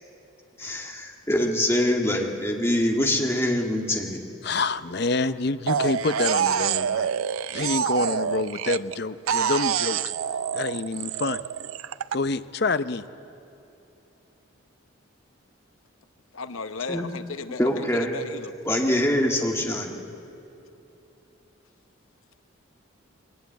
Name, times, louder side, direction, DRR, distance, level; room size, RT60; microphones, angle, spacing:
voice 1, 0.6-4.2 16.9-17.1 17.6-18.1 18.6-20.0, left 1 dB, 10° left, 1 dB, 1.8 m, -24 dB
voice 2, 4.4-7.1 7.5-10.0 10.5-11.4 12.1-13.0, left 3 dB, 50° left, 12 dB, 0.7 m, -27 dB
sound 1, 5.7-9.0 9.3-12.2, right 8 dB, 85° right, 0.5 m, -26 dB
voice 3, 16.3-18.5, left 4 dB, 85° left, 11 dB, 0.9 m, -35 dB
22.0 x 19.0 x 9.3 m, 3.0 s
head